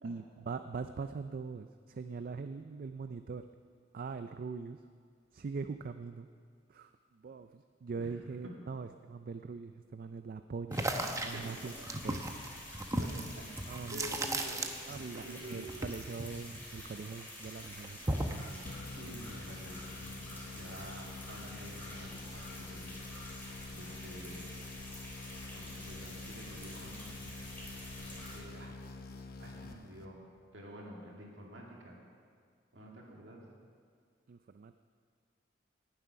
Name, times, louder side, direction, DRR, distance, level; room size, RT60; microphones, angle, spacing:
voice 1, 0.0-3.4 3.9-4.8 5.3-6.3 6.7-10.9 11.2-11.7 12.0-12.2 13.7-14.1 14.9-18.7 34.3-34.7, right 4 dB, 50° right, 9 dB, 0.4 m, -42 dB
sound 1, 10.7-28.4, left 1 dB, 10° left, 3.3 m, -48 dB
sound 2, 10.7-15.2 15.5-17.1 17.5-18.5, right 1 dB, 15° right, 0.8 m, -36 dB
voice 2, 12.9-13.6 13.9-14.7 15.1-15.9 18.9-23.0 23.3-23.4 23.7-24.5 25.5-27.3 28.0-28.7 29.4-30.2 30.5-32.0 32.7-33.4, right 1 dB, 70° right, -2 dB, 2.2 m, -49 dB
sound 3, 18.6-30.4, left 2 dB, 55° left, 0.8 m, -47 dB
18.5 x 7.6 x 5.7 m, 2.1 s
head